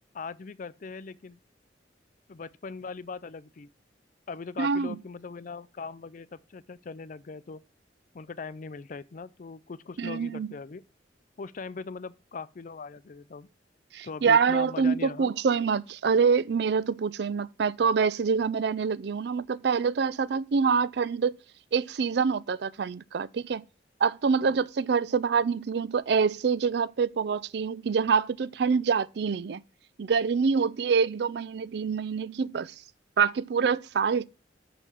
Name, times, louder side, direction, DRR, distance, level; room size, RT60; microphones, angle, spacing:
voice 1, 0.1-1.4 2.3-3.7 4.3-7.6 8.1-10.8 11.4-13.5 14.0-15.3 24.4-24.6, left 4 dB, 45° left, 0.4 m, -40 dB
voice 2, 4.6-5.0 10.0-10.5 13.9-21.4 21.7-23.6 24.0-29.6 30.0-32.7 33.2-34.3, right 5 dB, 65° right, 0.4 m, -26 dB
6.0 x 5.5 x 6.3 m
head